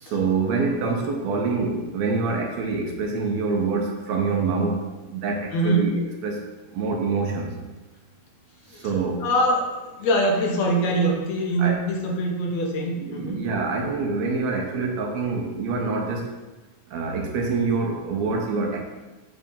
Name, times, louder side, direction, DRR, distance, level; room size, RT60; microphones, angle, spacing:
voice 1, 0.0-5.9 6.2-6.4 6.7-7.5 8.8-9.2 11.6-11.8 13.0-16.3 16.9-18.8, right 4 dB, 70° right, 1 dB, 1.9 m, -26 dB
voice 2, 5.5-5.9 8.7-13.4 13.8-13.9, right 1 dB, 70° left, 0 dB, 2.2 m, -24 dB
7.3 x 3.3 x 5.3 m, 1.1 s
omnidirectional pair, 3.5 m